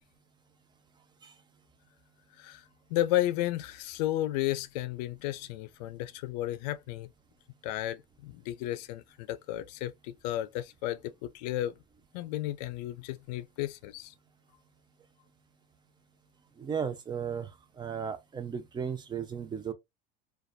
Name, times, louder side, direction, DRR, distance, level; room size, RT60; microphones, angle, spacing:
voice 1, 2.4-7.1 7.6-11.7 12.1-14.1, left 14 dB, 75° left, 0.4 m, -33 dB
voice 2, 16.6-17.5 17.8-19.7, right 7 dB, 20° right, 0.5 m, -35 dB
2.4 x 2.3 x 2.3 m
supercardioid pair, 120°, 21 cm